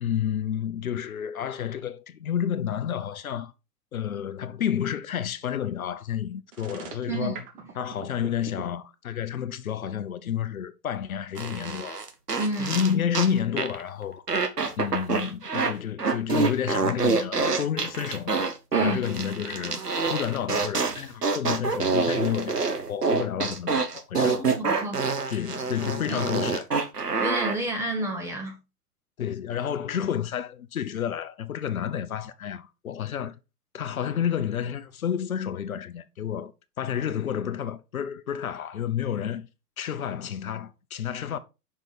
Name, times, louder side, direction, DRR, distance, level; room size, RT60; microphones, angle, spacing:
voice 1, 0.0-3.5 3.9-7.4 7.8-12.1 12.6-14.2 14.8-18.5 18.8-19.8 20.1-24.4 25.3-26.7 29.2-33.3 33.7-36.5 36.8-39.5 39.8-41.4, left 9 dB, 65° left, 0.7 m, -30 dB
sound 1, 6.5-8.6, right 6 dB, 35° right, 1.4 m, -41 dB
voice 2, 7.1-7.7 12.4-12.8 18.7-19.0 24.5-25.3 26.1-26.2 27.2-28.6, right 1 dB, 5° right, 0.6 m, -30 dB
sound 2, 11.4-13.3 13.6-13.8 14.3-15.7 16.0-27.6, right 4 dB, 90° right, 0.9 m, -26 dB
5.6 x 4.5 x 4.1 m
figure-of-eight pair, 110°, 46 cm